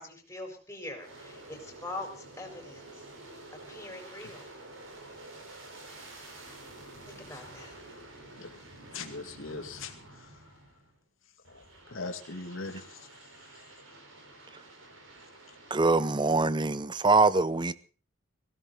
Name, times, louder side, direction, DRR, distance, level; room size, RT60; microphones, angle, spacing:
voice 1, 0.0-3.0 3.7-4.5 7.1-7.7, left 2 dB, 15° left, 4.7 m, -43 dB
Aircraft, 0.9-11.0 11.4-16.4, right 2 dB, 85° right, 4.7 m, -50 dB
voice 2, 8.9-10.3 11.5-13.1, left 3 dB, 70° left, 2.2 m, -41 dB
voice 3, 15.7-17.7, right 3 dB, 25° right, 0.7 m, -24 dB
19.0 x 16.0 x 4.0 m
head